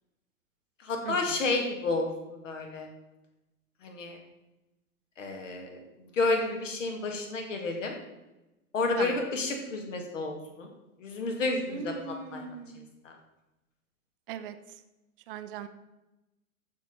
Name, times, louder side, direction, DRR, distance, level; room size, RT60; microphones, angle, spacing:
voice 1, 0.8-2.9 3.8-4.2 5.2-5.8 6.1-7.9 8.7-10.7 11.0-12.4 13.0-13.1, left 3 dB, 55° left, 3 dB, 2.5 m, -31 dB
voice 2, 11.6-12.8 14.3-14.5 15.3-15.7, right 7 dB, 35° right, 11 dB, 0.9 m, -38 dB
14.0 x 5.2 x 5.8 m, 1.0 s
figure-of-eight pair, 105°, 45 cm